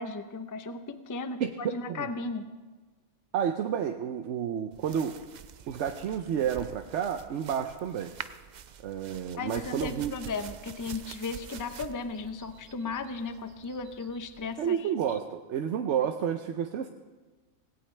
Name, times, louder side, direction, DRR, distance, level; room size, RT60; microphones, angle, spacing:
voice 1, 0.0-2.4 9.3-14.9, left 4 dB, 25° left, 9 dB, 0.4 m, -36 dB
voice 2, 1.4-2.1 3.3-5.2 5.7-8.1 8.8-10.1 14.6-16.9, right 8 dB, 65° right, 6 dB, 0.9 m, -30 dB
sound 1, 4.7-14.7, right 8 dB, 90° right, 0.4 m, -47 dB
18.5 x 17.0 x 3.3 m, 1.3 s
omnidirectional pair, 1.4 m